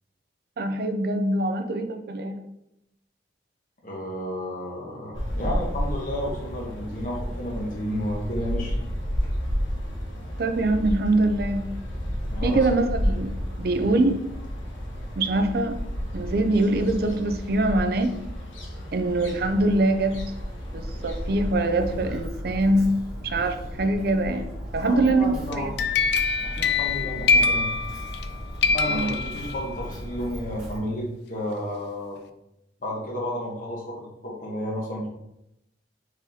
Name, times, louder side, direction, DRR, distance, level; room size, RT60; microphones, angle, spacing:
voice 1, 0.6-2.3 10.4-11.7 12.4-14.2 15.2-15.8 16.1-18.2 18.9-20.2 20.7-22.9 23.2-24.5 24.7-25.7 28.9-29.1, right 2 dB, 55° right, 7 dB, 0.4 m, -23 dB
voice 2, 3.8-8.7 12.3-12.7 13.8-13.9 24.8-25.9 26.4-27.7 28.6-32.2 32.8-35.1, equal, 45° left, -3 dB, 1.0 m, -32 dB
sound 1, 5.1-22.1, equal, 90° left, 1.1 m, -31 dB
Walk footsteps, 21.8-30.8, equal, 5° right, 1.4 m, -36 dB
sound 2, 25.5-28.3 28.6-29.9, left 4 dB, 60° left, 0.3 m, -24 dB
4.7 x 4.0 x 2.7 m, 0.84 s
head